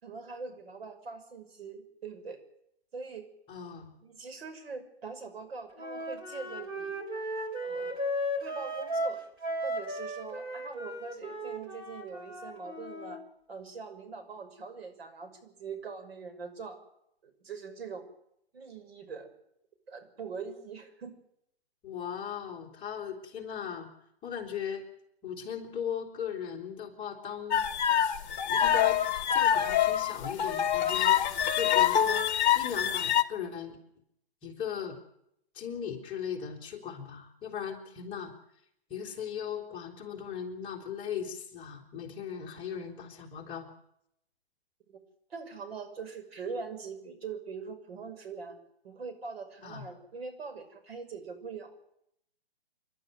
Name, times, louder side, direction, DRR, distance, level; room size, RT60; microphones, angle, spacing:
voice 1, 0.0-2.4 2.9-3.3 4.0-6.9 7.6-8.0 8.4-9.2 9.6-13.2 13.5-16.8 17.2-18.0 18.5-19.3 19.9-21.1 44.9-45.0 45.3-48.6 48.8-51.7, right 5 dB, 65° right, 6 dB, 6.1 m, -42 dB
voice 2, 3.5-3.9 21.8-23.9 24.2-24.8 25.2-28.2 28.5-29.0 29.3-32.3 32.5-33.8 34.4-35.0 35.5-38.3 38.9-43.7 49.6-49.8, left 8 dB, 15° left, -2 dB, 3.3 m, -38 dB
Wind instrument woodwind instrument, 5.8-13.2, equal, 15° right, 3.7 m, -35 dB
sound 1, 27.5-33.2, left 10 dB, 40° left, 1.5 m, -25 dB
29.0 x 12.0 x 9.4 m, 0.78 s
hypercardioid pair, 150°, 33 cm